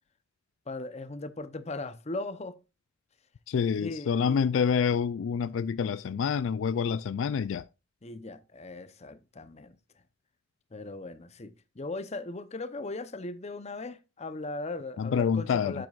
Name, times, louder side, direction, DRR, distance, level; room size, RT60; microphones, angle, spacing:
voice 1, 0.7-2.6 3.8-4.5 8.0-9.8 10.7-15.9, left 2 dB, 35° left, 0.8 m, -38 dB
voice 2, 3.5-7.7 15.0-15.9, left 6 dB, 70° left, 0.3 m, -27 dB
9.4 x 7.8 x 2.4 m
head